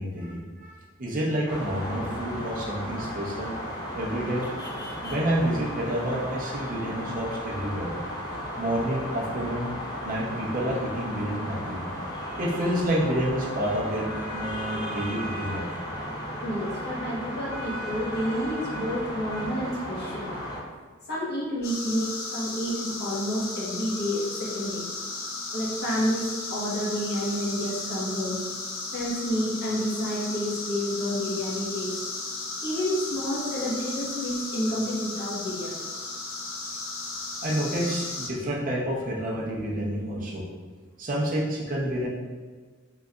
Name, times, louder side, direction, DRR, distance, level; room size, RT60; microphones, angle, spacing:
voice 1, 0.0-3.6 3.9-4.5 5.0-7.9 8.6-9.7 10.0-11.8 12.4-15.7 37.4-40.4 41.0-42.1, right 1 dB, 45° right, -4 dB, 0.8 m, -29 dB
sound 1, 1.5-20.6, equal, 20° left, 0.7 m, -35 dB
voice 2, 16.4-20.3 21.1-24.8 25.5-28.4 28.9-31.9 32.6-35.8, equal, 55° left, -7 dB, 1.3 m, -29 dB
sound 2, 21.6-38.3, left 3 dB, 85° left, 0.6 m, -35 dB
3.9 x 3.3 x 2.4 m, 1.4 s
head